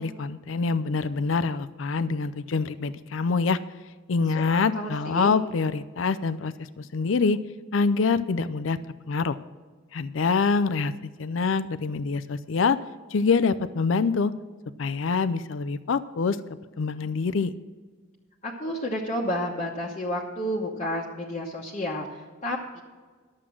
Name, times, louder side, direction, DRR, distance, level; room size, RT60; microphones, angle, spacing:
voice 1, 0.0-3.6 4.1-7.4 7.7-8.8 9.1-9.4 9.9-10.9 11.2-12.8 13.1-14.3 14.8-16.4 16.8-17.5, left 4 dB, 75° left, 15 dB, 0.5 m, -25 dB
voice 2, 4.3-5.3 18.4-22.8, equal, 35° left, -3 dB, 1.0 m, -31 dB
11.5 x 7.5 x 6.1 m, 1.5 s
head